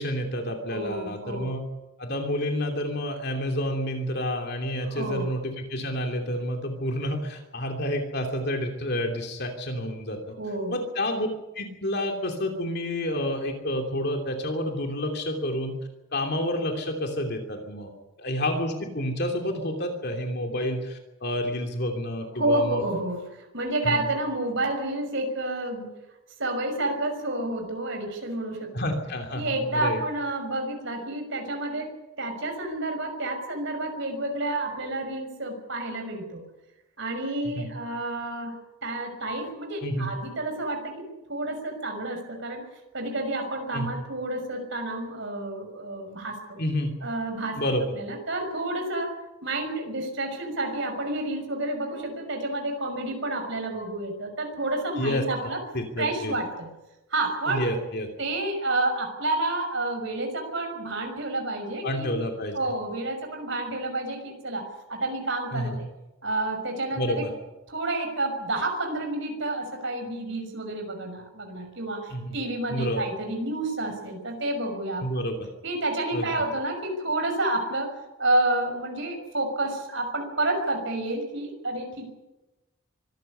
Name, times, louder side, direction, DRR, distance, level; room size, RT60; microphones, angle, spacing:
voice 1, 0.0-1.6 2.0-10.3 10.7-11.3 11.5-15.8 16.1-17.9 18.2-22.8 23.8-24.0 28.7-30.0 37.6-37.7 39.8-40.1 43.7-43.9 46.6-46.9 47.6-47.9 55.0-55.5 55.7-56.3 57.5-58.1 61.8-62.6 65.5-65.8 67.0-67.3 72.1-72.3 72.7-73.0 75.0-75.4 76.1-76.3, left 1 dB, 50° left, 3 dB, 2.9 m, -29 dB
voice 2, 0.7-1.5 4.9-5.3 10.4-10.8 22.4-25.9 26.4-28.7 29.3-36.4 37.0-42.6 42.9-46.6 47.0-49.1 49.4-55.6 56.0-56.7 57.1-57.7 58.2-62.1 62.5-65.9 66.2-67.3 67.7-75.0 75.6-82.1, right 2 dB, 55° right, 4 dB, 5.9 m, -30 dB
24.5 x 14.0 x 9.8 m, 1.0 s
head